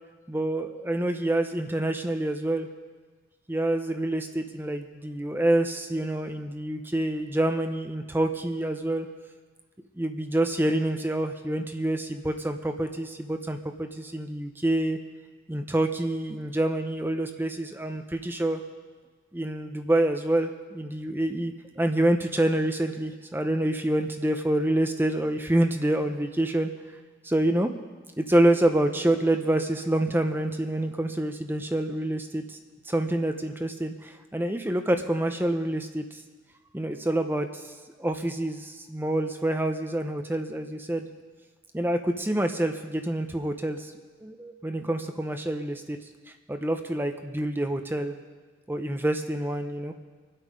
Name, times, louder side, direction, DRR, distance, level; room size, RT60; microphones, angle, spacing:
voice 1, 0.3-2.7 3.5-9.1 10.0-15.0 15.5-18.6 19.3-26.7 27.2-27.7 28.2-32.6 32.8-36.2 36.7-37.7 38.0-41.1 41.7-43.9 44.2-46.0 46.5-48.1 48.7-49.9, right 1 dB, 10° right, 6 dB, 0.6 m, -27 dB
25.0 x 8.4 x 5.2 m, 1.3 s
head